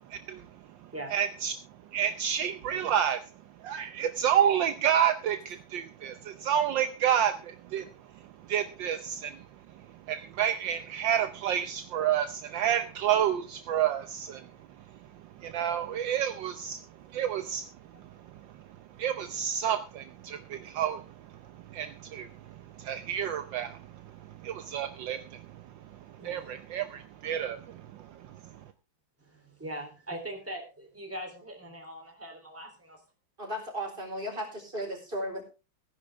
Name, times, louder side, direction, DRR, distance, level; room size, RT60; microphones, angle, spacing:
voice 1, 0.1-0.5 1.1-1.5 1.9-3.3 3.6-7.9 8.5-9.4 10.1-14.5 15.4-16.8 17.1-17.7 19.0-21.1 21.7-24.0 24.4-25.6 26.2-28.4, right 9 dB, 70° right, 10 dB, 1.5 m, -29 dB
voice 2, 26.2-26.5 29.2-33.0, right 1 dB, 5° right, 3 dB, 3.3 m, -41 dB
voice 3, 33.4-35.4, equal, 25° right, 2 dB, 4.5 m, -35 dB
17.0 x 10.5 x 3.5 m, 0.31 s
omnidirectional pair, 2.1 m